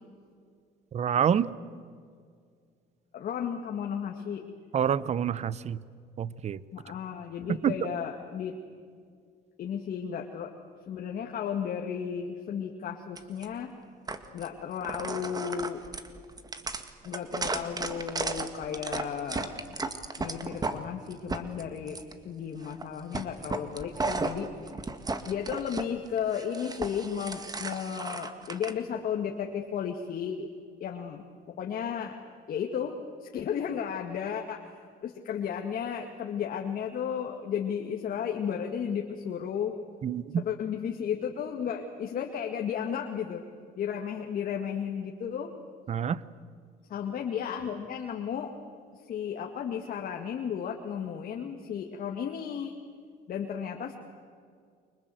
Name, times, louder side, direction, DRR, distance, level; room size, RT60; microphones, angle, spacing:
voice 1, 0.9-1.5 4.7-5.8 6.2-6.6 7.6-7.8 40.0-40.4 45.9-46.2, right 8 dB, 40° right, 18 dB, 0.8 m, -27 dB
voice 2, 3.1-4.4 6.7-8.6 9.6-10.5 10.9-13.7 14.3-15.8 17.0-19.5 20.2-22.0 22.2-24.5 25.2-30.5 30.8-31.2 31.6-32.2 32.5-39.7 40.3-43.4 43.8-45.5 46.9-48.5 49.0-52.8 53.3-53.9, left 8 dB, 55° left, 2 dB, 2.1 m, -34 dB
sound 1, 13.2-13.5 14.1-14.5 14.8-20.8 21.1-22.1 22.6-22.9 23.1-25.8 26.2-28.7, right 3 dB, 20° right, 1.9 m, -34 dB
29.5 x 24.5 x 7.9 m, 2.1 s
cardioid pair, 110°, 17 cm